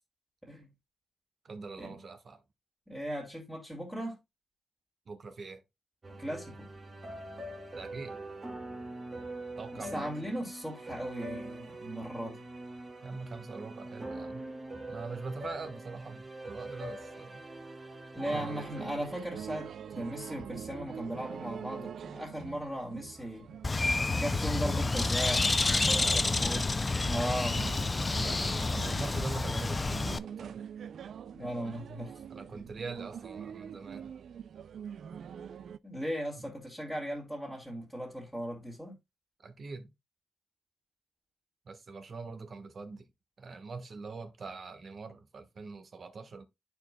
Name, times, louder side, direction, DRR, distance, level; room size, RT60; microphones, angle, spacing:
voice 1, 1.4-2.4 5.1-5.6 7.7-8.2 9.6-10.1 13.0-14.5 14.9-17.4 18.3-18.8 24.3-24.8 26.0-26.7 28.2-30.6 32.3-34.1 36.4-36.5 39.4-39.9 41.6-43.1 43.4-46.4, right 4 dB, 50° right, 1.3 m, -43 dB
voice 2, 2.9-4.2 6.2-6.7 9.8-12.4 18.1-23.6 24.1-27.8 31.3-32.1 35.8-38.9, equal, 5° right, 2.3 m, -37 dB
sound 1, 6.0-18.8, right 1 dB, 30° right, 1.8 m, -43 dB
sound 2, 18.2-35.8, right 8 dB, 70° right, 0.3 m, -45 dB
Bird, 23.6-30.2, left 3 dB, 25° left, 0.4 m, -29 dB
11.5 x 4.5 x 2.2 m
cardioid pair, 95°, 0 cm